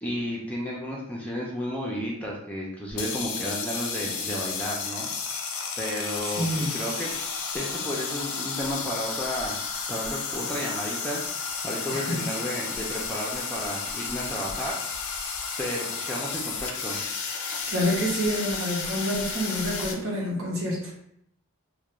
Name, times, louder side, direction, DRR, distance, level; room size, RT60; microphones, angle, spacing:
voice 1, 0.0-5.1 5.8-7.1 7.5-9.6 9.9-14.7 15.6-17.0, equal, 5° left, -3 dB, 0.4 m, -32 dB
sound 1, 2.9-19.9, left 5 dB, 85° left, 0.4 m, -32 dB
voice 2, 6.2-6.7 11.9-12.2 17.7-20.9, equal, 75° right, -2 dB, 0.8 m, -28 dB
2.4 x 2.1 x 2.9 m, 0.72 s
head